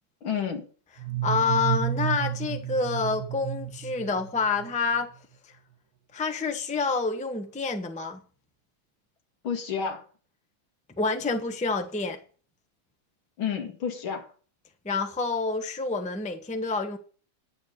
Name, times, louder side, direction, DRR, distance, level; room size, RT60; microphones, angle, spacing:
voice 1, 0.2-0.7 9.4-10.0 13.4-14.3, left 7 dB, 75° left, 2.6 m, -30 dB
sound 1, 1.0-4.7, right 11 dB, 80° right, 1.6 m, -31 dB
voice 2, 1.2-5.1 6.1-8.2 11.0-12.2 14.8-17.0, left 4 dB, 10° left, 0.5 m, -28 dB
10.5 x 6.8 x 6.5 m
omnidirectional pair, 2.3 m